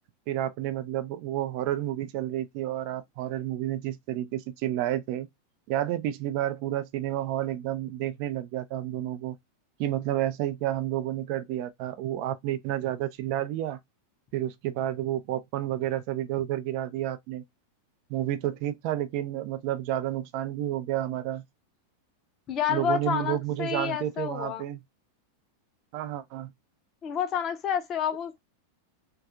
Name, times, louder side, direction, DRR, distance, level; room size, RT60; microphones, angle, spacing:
voice 1, 0.3-5.3 5.7-9.4 9.8-13.8 14.3-17.4 18.1-21.4 22.7-24.8 25.9-26.5, right 13 dB, 45° right, 0.3 m, -30 dB
voice 2, 22.5-24.6 27.0-28.4, left 8 dB, 30° left, 0.5 m, -29 dB
2.4 x 2.3 x 2.4 m
figure-of-eight pair, 90°, 0 cm